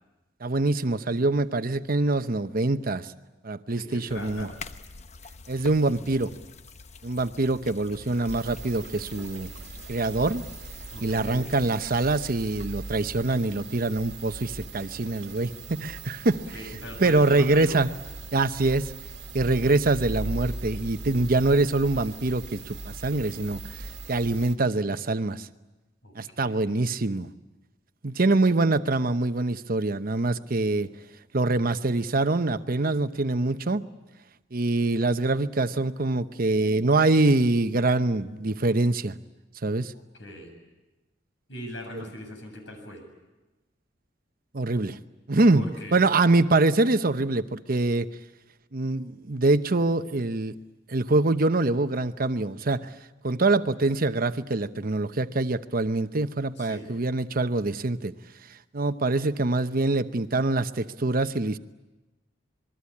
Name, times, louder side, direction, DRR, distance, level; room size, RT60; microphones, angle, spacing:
voice 1, 0.4-3.1 3.4-4.5 5.5-6.4 7.0-9.5 9.9-10.5 11.0-16.4 17.0-17.9 18.3-18.9 19.3-23.8 24.1-25.5 26.2-27.3 28.0-30.9 31.3-33.8 34.5-39.2 39.6-39.9 44.5-45.0 45.3-45.6 45.9-48.1 48.7-50.5 50.9-52.9 53.2-58.1 58.7-61.6, right 2 dB, 50° right, 11 dB, 0.9 m, -24 dB
voice 2, 3.7-4.5 10.9-11.5 16.3-17.8 26.0-26.9 40.2-40.5 41.5-43.0 45.5-46.0 56.6-56.9, equal, 75° left, 4 dB, 7.9 m, -40 dB
sound 1, 4.1-12.7, left 4 dB, 40° left, 0.9 m, -46 dB
sound 2, 8.3-24.6, right 2 dB, 70° right, 1.8 m, -40 dB
28.0 x 22.0 x 8.6 m, 1.1 s
head